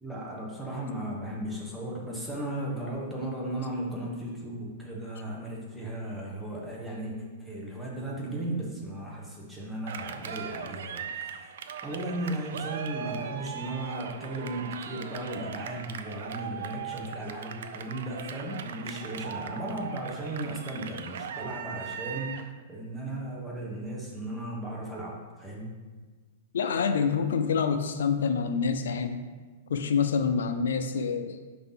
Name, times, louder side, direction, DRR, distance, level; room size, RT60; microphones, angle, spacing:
voice 1, 0.0-11.5 11.8-25.7, right 1 dB, 5° right, -4 dB, 1.2 m, -36 dB
Cheering, 9.9-22.5, right 7 dB, 70° right, 0.5 m, -39 dB
voice 2, 26.5-29.2 29.7-31.4, left 6 dB, 85° left, 8 dB, 0.5 m, -27 dB
5.6 x 3.9 x 5.6 m, 1.4 s
hypercardioid pair, 155°, 0 cm